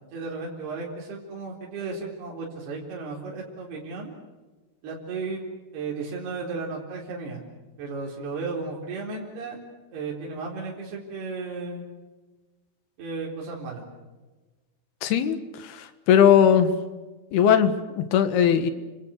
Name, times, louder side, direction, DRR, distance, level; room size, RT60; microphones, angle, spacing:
voice 1, 0.1-4.1 4.8-5.4 5.7-7.4 7.8-9.6 9.9-11.8 13.0-13.8, right 4 dB, 70° right, -2 dB, 6.1 m, -34 dB
voice 2, 15.0-16.7 17.3-18.7, left 8 dB, 70° left, 10 dB, 3.4 m, -19 dB
30.0 x 26.0 x 6.6 m, 1.2 s
omnidirectional pair, 4.8 m